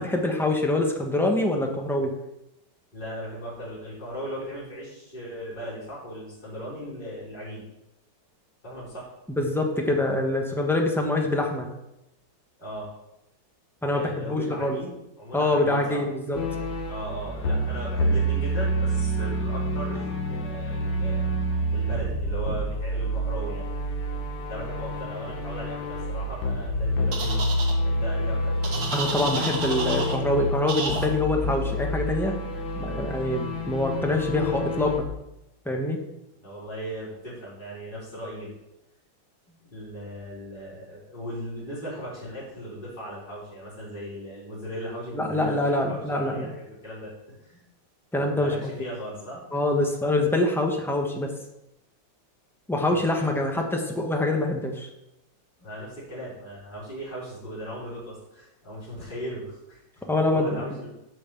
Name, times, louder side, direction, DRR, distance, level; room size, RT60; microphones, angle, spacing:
voice 1, 0.0-2.1 9.3-11.7 13.8-14.8 15.3-16.4 28.9-32.4 32.8-35.1 35.6-36.0 45.1-46.5 48.1-48.7 49.5-51.3 52.7-54.9 60.1-60.6, left 2 dB, ahead, 2 dB, 0.8 m, -25 dB
voice 2, 2.9-7.6 8.6-9.1 12.6-12.9 13.9-16.0 16.9-21.3 21.7-23.6 24.5-27.5 27.8-28.8 36.4-38.5 39.5-47.6 48.4-49.4 55.6-60.9, equal, 25° left, -10 dB, 3.9 m, -37 dB
sound 1, 16.3-35.0, equal, 75° left, 1.9 m, -28 dB
Happy Goat, 27.1-27.7 28.6-30.2 30.7-31.1, right 4 dB, 50° right, 1.7 m, -30 dB
7.8 x 5.9 x 6.9 m, 0.88 s
omnidirectional pair, 2.2 m